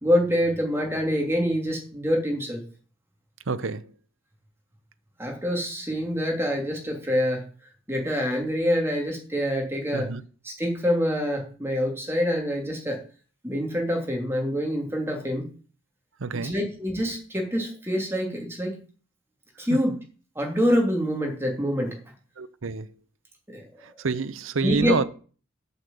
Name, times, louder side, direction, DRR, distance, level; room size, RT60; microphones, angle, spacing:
voice 1, 0.0-2.6 5.2-7.4 7.9-10.1 10.4-13.0 13.4-15.4 16.4-18.7 19.6-20.0 20.3-21.9 23.5-23.6 24.6-25.0, equal, 10° right, 3.0 m, -26 dB
voice 2, 3.5-3.9 9.9-10.2 16.2-16.6 22.4-22.9 23.8-25.0, right 4 dB, 70° right, 0.7 m, -28 dB
8.2 x 6.8 x 7.7 m
head